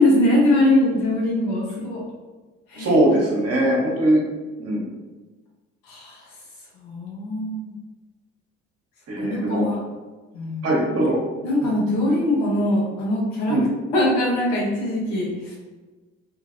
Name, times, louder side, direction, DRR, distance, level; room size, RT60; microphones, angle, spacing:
voice 1, 0.0-2.0 2.7-3.0 5.9-6.3 6.7-7.7 9.2-9.8 10.3-10.7 11.4-13.6 13.9-15.5, left 1 dB, 80° left, -4 dB, 1.0 m, -22 dB
voice 2, 2.8-4.2 4.6-4.9 9.1-9.6 10.6-11.1 11.6-11.7 13.5-13.6, right 1 dB, 45° right, -3 dB, 1.1 m, -20 dB
2.8 x 2.5 x 2.6 m, 1.2 s
hypercardioid pair, 55°, 34 cm